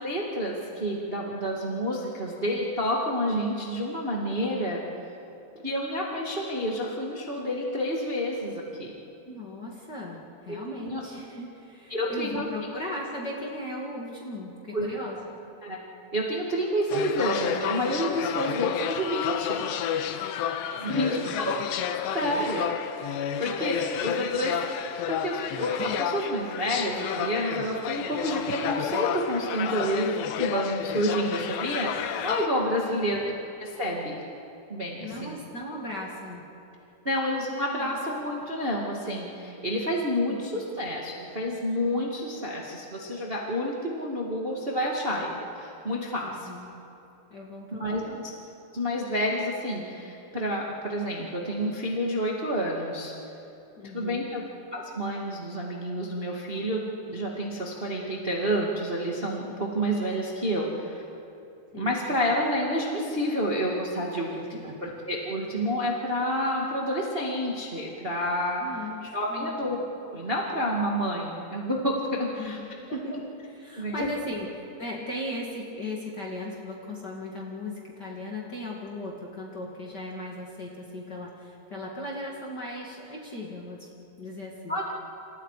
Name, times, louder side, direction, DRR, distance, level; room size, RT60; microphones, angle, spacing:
voice 1, 0.0-4.8 5.6-8.9 10.5-11.0 11.9-12.5 14.7-14.9 15.6-15.8 16.1-19.7 20.8-21.5 22.1-22.6 23.4-24.5 24.8-33.2 33.6-34.2 34.7-35.4 37.0-46.5 47.8-48.0 48.7-53.1 53.9-54.4 54.7-61.0 61.7-68.6 69.0-69.8 70.0-72.6 72.9-73.0 73.8-74.1 84.7-84.8, equal, 80° right, -2 dB, 0.5 m, -29 dB
voice 2, 9.3-15.4 20.9-21.3 22.3-22.4 24.0-24.1 32.8-33.4 35.0-36.4 37.7-38.0 40.3-40.7 46.2-46.7 47.3-48.2 53.8-54.3 61.7-62.0 64.3-64.7 68.6-69.5 72.4-83.9 84.2-84.8, left 1 dB, 40° left, -2 dB, 1.5 m, -37 dB
sound 1, 16.9-32.5, left 9 dB, 75° left, 3.0 m, -31 dB
29.5 x 27.5 x 5.0 m, 2.7 s
omnidirectional pair, 5.3 m